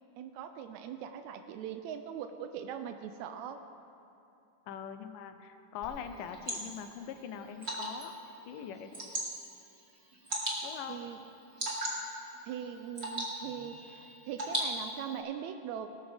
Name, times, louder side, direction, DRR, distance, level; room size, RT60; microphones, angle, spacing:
voice 1, 0.2-3.6 10.9-11.2 12.2-15.9, right 9 dB, 90° right, 8 dB, 1.6 m, -41 dB
voice 2, 4.7-8.1 8.5-9.0 10.6-11.0, left 8 dB, 85° left, 8 dB, 2.3 m, -42 dB
Water / Drip, 5.8-15.2, right 1 dB, 25° right, 1.6 m, -39 dB
18.5 x 12.5 x 3.4 m, 2.8 s
omnidirectional pair, 3.8 m